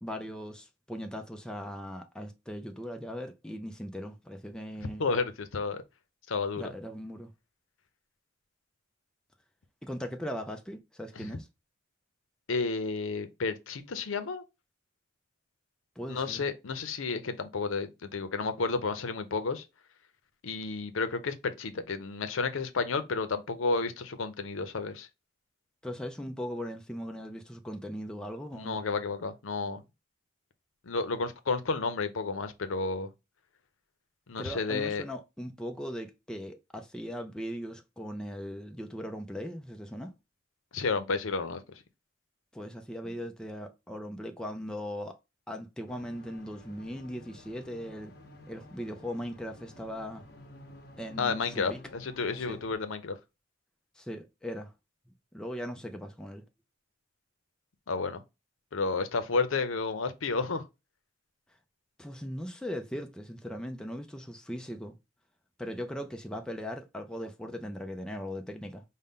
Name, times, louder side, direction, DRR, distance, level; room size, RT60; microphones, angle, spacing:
voice 1, 0.0-5.0 6.6-7.3 9.8-11.5 16.0-16.5 25.8-28.8 34.4-40.1 42.5-45.2 45.5-48.1 48.5-50.2 51.0-51.8 52.5-52.6 54.0-54.7 55.3-56.4 62.0-65.0 65.6-68.8, equal, 5° left, 0.4 m, -39 dB
voice 2, 5.0-5.8 6.3-6.7 11.2-11.3 12.5-14.4 16.1-19.7 20.4-25.1 28.5-29.8 30.8-33.1 34.3-35.0 40.7-41.8 51.2-53.2 57.9-58.2 58.7-60.6, left 4 dB, 85° left, 0.6 m, -31 dB
sound 1, 45.9-52.7, left 2 dB, 50° left, 0.9 m, -52 dB
5.3 x 2.1 x 3.6 m
head